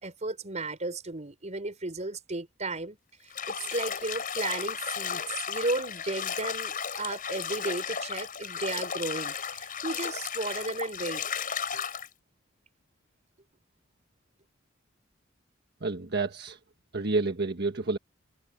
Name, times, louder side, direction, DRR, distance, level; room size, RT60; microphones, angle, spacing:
voice 1, 0.0-3.0 3.2-11.3 11.7-11.8, right 2 dB, 35° right, 4.8 m, -34 dB
Bathtub (filling or washing), 3.3-12.1, left 7 dB, 45° left, 5.4 m, -34 dB
voice 2, 15.8-16.6 16.9-18.0, right 3 dB, 55° right, 1.4 m, -29 dB
head